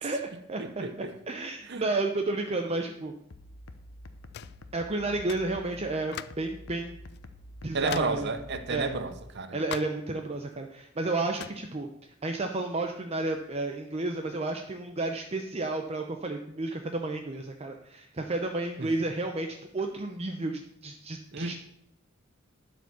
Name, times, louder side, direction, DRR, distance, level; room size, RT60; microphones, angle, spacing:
voice 1, 0.0-0.6 1.3-3.1 4.7-7.0 7.6-8.3 8.7-8.9 9.5-11.9 12.2-21.5, right 2 dB, 30° right, 0.6 m, -32 dB
voice 2, 0.6-1.1 1.7-1.8 7.7-9.6 18.8-18.9 21.3-21.5, right 3 dB, 55° right, 0.9 m, -32 dB
sound 1, 3.3-9.3, left 1 dB, 80° left, 0.9 m, -48 dB
sound 2, 4.3-4.6 5.3-5.5 6.1-6.5 7.1-7.2 7.9-8.2 9.7-10.1 11.4-11.6, left 10 dB, 50° left, 0.3 m, -40 dB
11.5 x 5.2 x 6.9 m
head